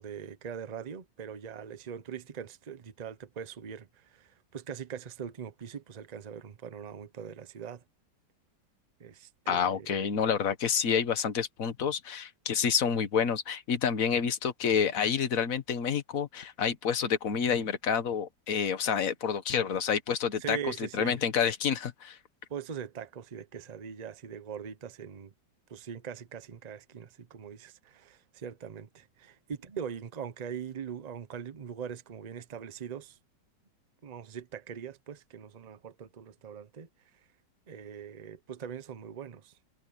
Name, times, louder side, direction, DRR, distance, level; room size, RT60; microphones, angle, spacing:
voice 1, 0.0-7.8 9.0-10.0 20.4-21.2 22.5-25.3 25.7-33.2 34.0-36.9 37.7-39.5, right 7 dB, 35° right, 0.7 m, -41 dB
voice 2, 9.5-22.2, left 7 dB, 50° left, 1.7 m, -28 dB
omnidirectional pair, 1.9 m